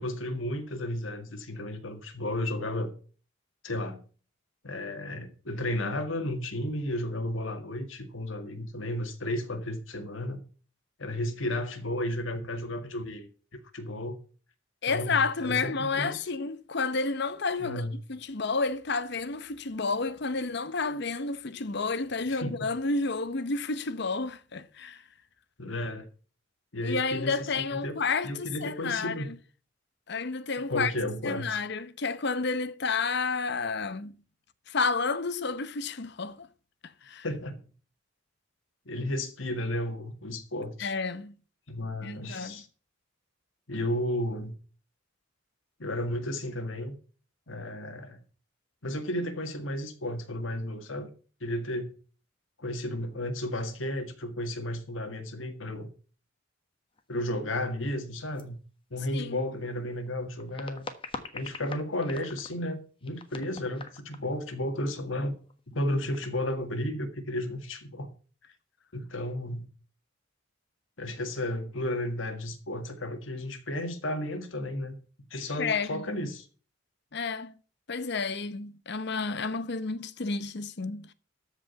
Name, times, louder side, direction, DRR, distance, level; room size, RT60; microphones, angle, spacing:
voice 1, 0.0-2.9 3.6-4.0 4.6-10.4 11.0-14.2 14.9-16.3 17.6-18.0 22.3-22.5 25.6-26.1 26.7-28.0 28.2-29.3 30.7-31.6 37.2-37.6 38.8-40.9 41.7-42.7 43.7-44.6 45.8-47.0 47.5-48.2 48.8-51.1 51.4-51.9 52.6-55.9 57.1-58.6 58.9-60.8 61.3-65.3 65.7-68.1 68.9-69.7 71.0-75.0 75.3-76.5, left 1 dB, 85° left, 1.9 m, -33 dB
voice 2, 14.8-17.8 18.1-25.0 26.8-29.4 30.1-30.9 31.2-34.1 34.7-36.5 37.0-37.2 40.8-41.3 42.0-42.6 59.1-59.4 75.6-76.0 77.1-77.5 77.9-81.1, left 4 dB, 60° left, 0.8 m, -30 dB
sound 1, 57.0-57.1 57.4-57.5 58.4-58.5 59.0-59.2 60.1-62.7 63.0-64.4 64.7-64.8 65.0-65.1 65.4-65.6 65.9-66.5, left 3 dB, 25° left, 1.3 m, -43 dB
13.5 x 5.1 x 6.9 m
head